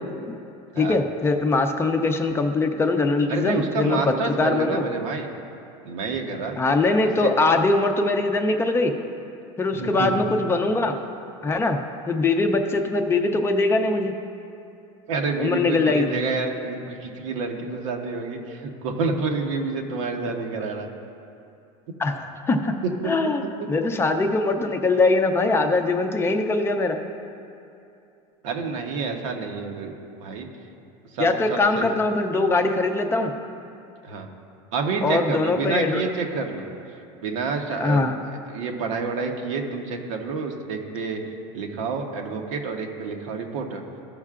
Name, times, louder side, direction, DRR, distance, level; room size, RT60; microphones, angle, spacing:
voice 1, 0.8-4.9 6.6-8.9 9.6-11.0 11.4-11.8 12.1-14.1 15.4-16.1 22.0-22.7 23.1-23.4 23.7-27.0 31.2-33.3 35.0-36.0 37.8-38.2, left 3 dB, 15° left, 5 dB, 0.5 m, -22 dB
voice 2, 3.3-5.3 5.8-6.6 7.2-7.3 9.7-10.1 15.1-20.9 22.8-23.1 28.4-29.9 30.2-30.5 31.1-31.9 34.0-34.3 34.7-36.7 37.2-38.1 38.5-41.2 41.5-43.8, right 4 dB, 85° right, 2 dB, 1.1 m, -28 dB
15.5 x 5.6 x 2.4 m, 2.7 s
supercardioid pair, 140°, 16 cm